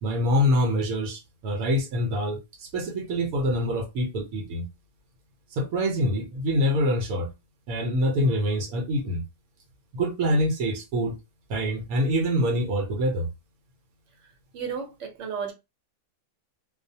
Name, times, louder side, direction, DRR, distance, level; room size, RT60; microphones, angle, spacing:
voice 1, 0.0-4.7 5.5-7.3 7.7-9.2 9.9-11.2 11.5-13.3, equal, 85° right, 1.1 m, -25 dB
voice 2, 14.2-15.5, right 6 dB, 60° right, 1.0 m, -34 dB
2.6 x 2.1 x 2.6 m
omnidirectional pair, 1.5 m